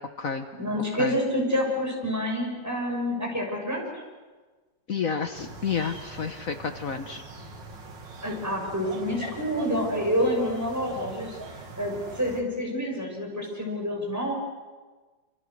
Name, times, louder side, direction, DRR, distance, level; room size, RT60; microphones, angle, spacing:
voice 1, 0.6-4.0 8.2-14.3, equal, 10° right, 0 dB, 6.1 m, -28 dB
voice 2, 4.9-7.2, left 6 dB, 55° left, 7 dB, 1.4 m, -30 dB
sound 1, 5.3-12.4, right 3 dB, 85° right, 3.0 m, -42 dB
27.0 x 26.5 x 6.6 m, 1.3 s
omnidirectional pair, 1.9 m